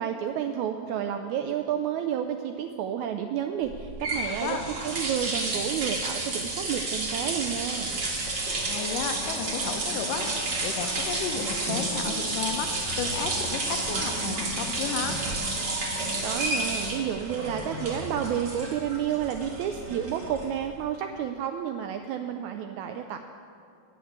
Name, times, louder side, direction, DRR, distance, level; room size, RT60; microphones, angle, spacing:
voice 1, 0.0-4.6 4.8-7.9 16.2-23.2, right 9 dB, 80° right, 6 dB, 1.7 m, -30 dB
sound 1, 3.7-20.7, right 2 dB, 40° right, 2.1 m, -31 dB
voice 2, 4.3-4.7 8.7-15.2, left 7 dB, 85° left, 6 dB, 2.4 m, -33 dB
9.7 x 8.8 x 8.0 m, 2.5 s
omnidirectional pair, 3.8 m